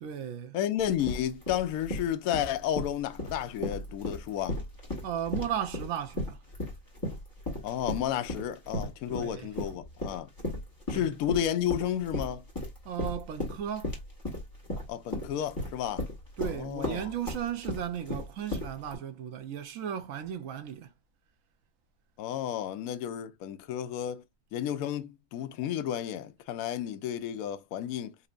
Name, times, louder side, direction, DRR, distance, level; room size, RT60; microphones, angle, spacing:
voice 1, 0.0-0.6 5.0-6.4 9.1-9.5 10.9-11.1 12.8-14.0 16.4-20.9, right 9 dB, 65° right, 0.9 m, -35 dB
voice 2, 0.5-4.6 7.6-10.3 10.9-12.4 14.9-16.0 16.4-17.1 22.2-24.2 24.5-28.1, left 10 dB, 65° left, 0.9 m, -32 dB
sound 1, 0.8-19.0, left 1 dB, 10° left, 1.6 m, -35 dB
4.4 x 2.8 x 2.4 m
omnidirectional pair, 1.8 m